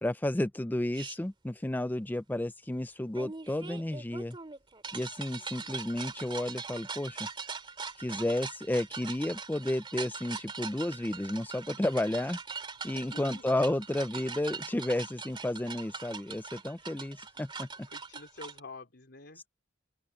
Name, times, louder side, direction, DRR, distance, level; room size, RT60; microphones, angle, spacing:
voice 1, 0.0-4.4 4.9-7.3 8.0-12.4 12.8-17.9, left 1 dB, 10° left, 0.5 m, -32 dB
sound 1, 0.9-1.2 3.2-18.6, right 5 dB, 25° right, 2.5 m, -42 dB
voice 2, 5.3-5.8 12.9-13.7 17.4-17.5 17.9-19.5, left 3 dB, 60° left, 3.9 m, -49 dB
open air
head